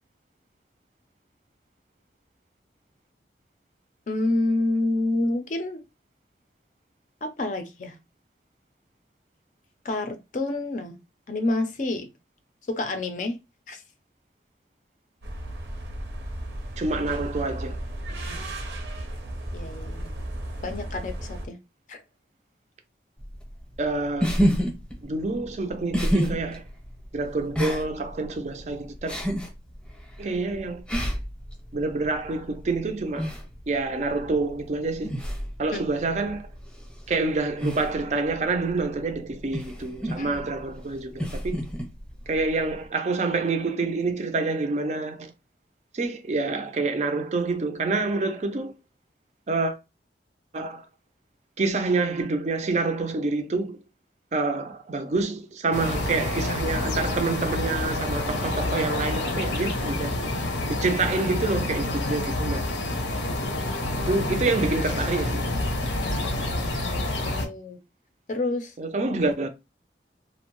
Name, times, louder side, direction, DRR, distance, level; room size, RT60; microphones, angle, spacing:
voice 1, 4.1-5.8 7.2-7.9 9.8-11.0 11.3-12.1 12.7-13.4 13.7-13.8 18.3-18.5 19.5-20.3 20.6-21.6 21.9-22.0 35.7-35.8 40.2-40.5 66.0-67.8 68.3-68.7, left 2 dB, 45° left, 0.4 m, -29 dB
sound 1, 15.2-21.5, right 1 dB, 80° right, 0.7 m, -34 dB
voice 2, 16.8-17.8 23.8-24.4 25.0-26.6 27.1-29.2 30.2-30.8 31.7-33.3 33.7-35.1 35.6-36.5 37.1-41.6 42.3-45.3 45.9-48.7 49.5-49.8 50.5-50.9 51.6-53.8 54.3-60.2 60.7-62.6 63.9-65.5 68.8-69.5, right 3 dB, 40° right, 0.4 m, -27 dB
sound 2, 23.2-42.9, equal, 5° left, 0.7 m, -31 dB
sound 3, 55.7-67.5, left 2 dB, 85° left, 0.6 m, -28 dB
2.6 x 2.1 x 2.9 m
head